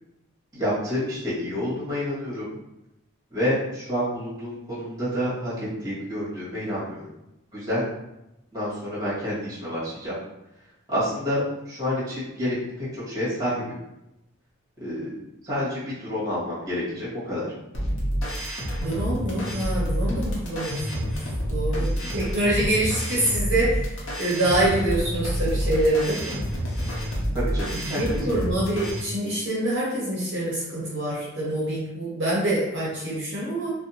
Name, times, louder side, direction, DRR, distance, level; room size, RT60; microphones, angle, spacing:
voice 1, 0.5-2.5 3.3-7.0 7.5-7.8 8.5-10.1 10.9-13.7 14.8-15.1 15.4-17.5 21.9-22.1 27.3-28.3, equal, 15° right, -10 dB, 1.2 m, -28 dB
sound 1, 17.7-29.0, equal, 65° left, 0.7 m, -28 dB
voice 2, 18.8-21.1 21.5-23.9 24.2-26.4 27.7-33.7, right 1 dB, 55° right, -7 dB, 0.7 m, -25 dB
2.6 x 2.1 x 2.7 m, 0.91 s
head